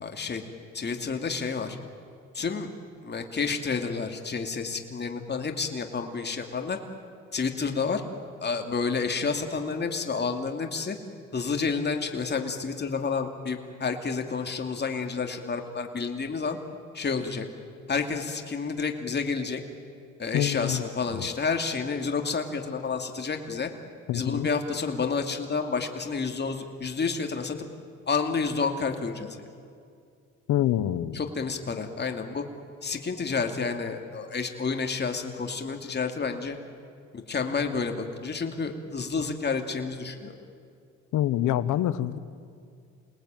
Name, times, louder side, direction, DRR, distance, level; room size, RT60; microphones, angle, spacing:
voice 1, 0.0-0.4 0.7-1.8 2.3-2.7 3.0-6.8 7.3-8.0 8.4-11.0 11.3-16.6 16.9-17.5 17.9-19.6 20.2-23.7 24.1-27.6 28.1-29.4 31.1-32.4 32.8-36.6 37.3-40.3, left 5 dB, 35° left, 4 dB, 2.5 m, -30 dB
voice 2, 20.3-20.8 21.1-21.3 24.1-24.5 30.5-31.2 41.1-42.2, left 12 dB, 85° left, 14 dB, 1.0 m, -26 dB
28.5 x 19.5 x 9.1 m, 2.3 s
cardioid pair, 90°, 30 cm